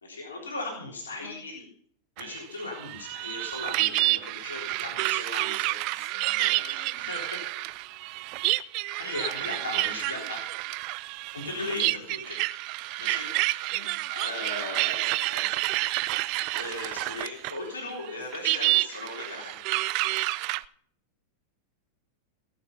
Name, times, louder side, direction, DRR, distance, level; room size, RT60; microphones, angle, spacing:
voice 1, 0.0-1.7 2.2-6.1 6.4-7.6 9.0-10.4 11.3-12.4 13.0-13.7 14.1-15.6 16.5-19.5, left 2 dB, 70° left, -1 dB, 3.6 m, -38 dB
sound 1, 2.2-17.6 17.9-20.6, right 20 dB, 45° right, 0.4 m, -29 dB
voice 2, 5.9-7.3 9.4-10.0 11.6-12.0 13.7-14.0, left 4 dB, 35° left, 1 dB, 4.7 m, -51 dB
18.0 x 8.1 x 5.6 m, 0.63 s
figure-of-eight pair, 90°, 0 cm